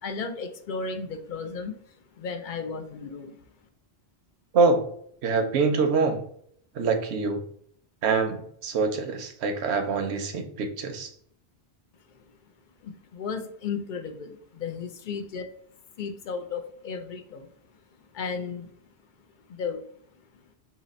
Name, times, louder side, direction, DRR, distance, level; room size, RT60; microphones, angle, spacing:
voice 1, 0.0-1.7 2.1-3.4 12.8-15.4 16.0-17.5 18.1-18.7 19.5-19.8, left 5 dB, 60° left, 6 dB, 0.6 m, -34 dB
voice 2, 5.2-6.2 6.8-7.4 8.0-11.1, right 4 dB, 80° right, 6 dB, 0.9 m, -25 dB
2.9 x 2.9 x 4.0 m, 0.65 s
omnidirectional pair, 1.1 m